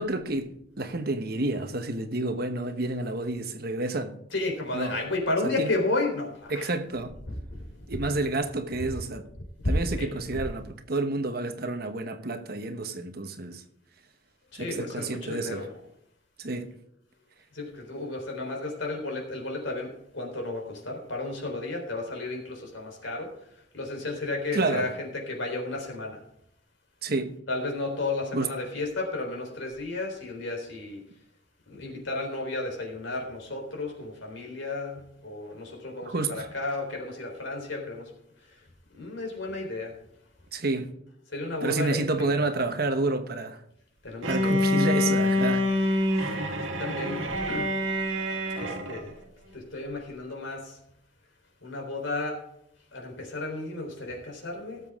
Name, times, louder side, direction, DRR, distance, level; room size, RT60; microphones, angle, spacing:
voice 1, 0.0-4.1 4.7-5.0 5.6-5.7 6.5-7.2 7.9-9.3 9.7-13.6 14.6-15.7 16.4-16.7 24.5-24.9 27.0-27.3 28.3-28.5 36.1-36.5 40.5-40.9 41.6-43.6 44.3-45.9, right 2 dB, 50° right, 1.1 m, -29 dB
voice 2, 4.3-6.7 7.3-7.6 8.8-8.9 9.6-10.4 14.5-15.8 17.5-23.3 23.7-26.2 27.5-31.0 31.7-38.1 38.9-39.9 41.3-42.4 44.0-44.6 46.2-47.8 48.5-49.2 49.5-50.8 51.6-52.5 52.9-54.8, left 2 dB, 80° left, 3.9 m, -33 dB
Bowed string instrument, 44.2-49.1, left 1 dB, 85° right, 1.8 m, -26 dB
18.0 x 7.5 x 3.6 m
head